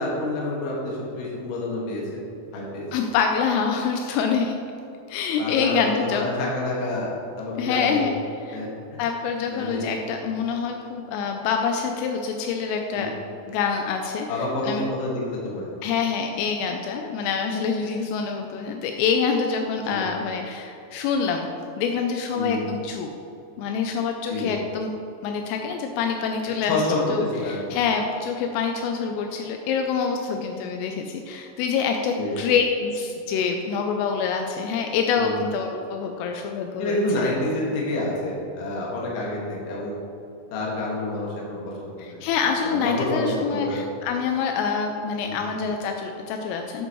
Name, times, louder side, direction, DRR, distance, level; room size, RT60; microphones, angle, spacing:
voice 1, 0.0-2.0 2.5-2.9 5.4-8.1 8.5-9.0 9.5-9.8 12.9-13.1 14.3-15.7 19.8-20.0 22.3-22.7 24.3-24.5 26.7-27.8 32.2-32.3 35.1-35.3 36.8-40.0 40.5-42.2 42.6-43.8 45.2-45.5, left 2 dB, 55° left, -4 dB, 2.6 m, -28 dB
voice 2, 2.9-4.6 5.1-6.3 7.6-8.1 8.5-8.6 9.0-13.1 13.5-14.8 15.8-21.5 21.8-23.1 23.6-24.9 25.2-26.8 27.1-37.3 42.0-46.9, left 6 dB, 85° left, 4 dB, 3.1 m, -26 dB
12.5 x 8.0 x 3.1 m, 2.7 s
omnidirectional pair, 5.9 m